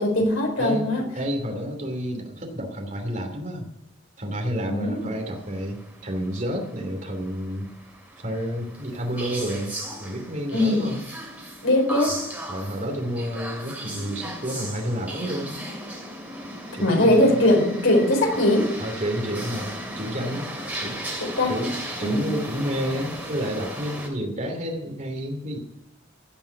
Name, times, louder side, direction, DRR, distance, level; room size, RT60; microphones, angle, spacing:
voice 1, 0.0-1.0 4.7-5.1 10.5-10.9 11.6-12.2 16.8-18.7 21.2-21.7 22.0-22.4, left 1 dB, 85° left, 0 dB, 4.4 m, -21 dB
voice 2, 0.6-3.7 4.2-7.7 8.2-9.7 10.0-11.0 12.5-15.6 16.7-17.4 18.8-20.5 20.8-21.1 21.5-25.6, equal, 40° right, 2 dB, 2.8 m, -30 dB
sound 1, 4.9-24.1, right 1 dB, 10° right, 2.7 m, -37 dB
16.0 x 5.7 x 9.7 m, 0.85 s
head